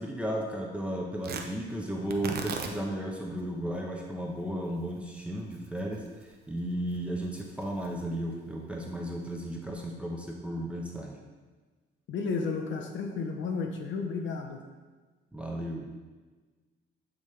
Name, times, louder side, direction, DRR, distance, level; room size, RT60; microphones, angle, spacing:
voice 1, 0.0-11.2 15.3-15.9, right 1 dB, 5° right, -1 dB, 0.8 m, -34 dB
Tearing, 1.2-9.6, right 5 dB, 50° right, 0.6 m, -43 dB
voice 2, 12.1-14.6, left 4 dB, 70° left, 4 dB, 0.8 m, -32 dB
8.4 x 3.6 x 3.2 m, 1.3 s
cardioid pair, 90°, 20 cm